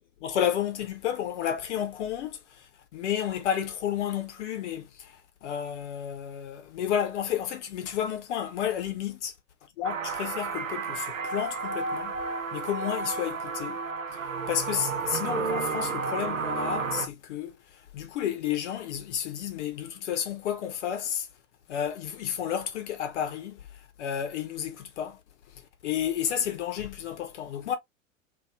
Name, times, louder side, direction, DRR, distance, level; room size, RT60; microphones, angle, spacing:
voice 1, 0.2-9.3 9.8-12.2 12.5-13.8 14.1-21.3 21.7-25.2 25.5-27.8, left 9 dB, 60° left, 1.1 m, -31 dB
sound 1, 9.8-17.1, right 4 dB, 85° right, 0.6 m, -32 dB
2.9 x 2.7 x 2.4 m
figure-of-eight pair, 85°, 39 cm